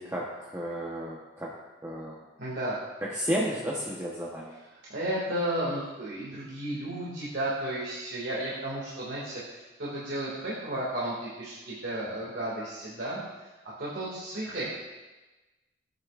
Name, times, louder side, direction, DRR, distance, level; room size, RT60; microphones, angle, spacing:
voice 1, 0.0-1.5 1.8-2.2 3.0-4.6, equal, 15° right, -5 dB, 1.0 m, -32 dB
voice 2, 2.4-2.8 4.9-13.2 13.8-14.7, right 1 dB, 65° right, -7 dB, 2.2 m, -33 dB
15.5 x 9.1 x 2.5 m, 1.1 s
head